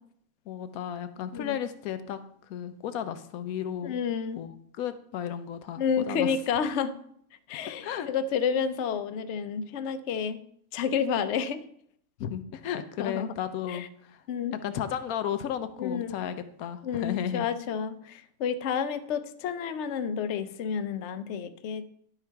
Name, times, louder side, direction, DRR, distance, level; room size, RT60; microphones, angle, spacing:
voice 1, 0.5-2.2 2.5-4.0 4.4-6.3 7.7-8.1 12.2-14.2 14.6-17.5, left 9 dB, 90° left, 11 dB, 1.1 m, -34 dB
voice 2, 3.8-4.4 5.8-7.0 7.5-10.4 10.7-11.6 13.0-13.3 13.7-13.9 14.3-14.6 15.8-16.1 16.8-21.8, left 7 dB, 60° left, 10 dB, 0.9 m, -30 dB
11.5 x 5.7 x 4.6 m, 0.67 s
omnidirectional pair, 1.5 m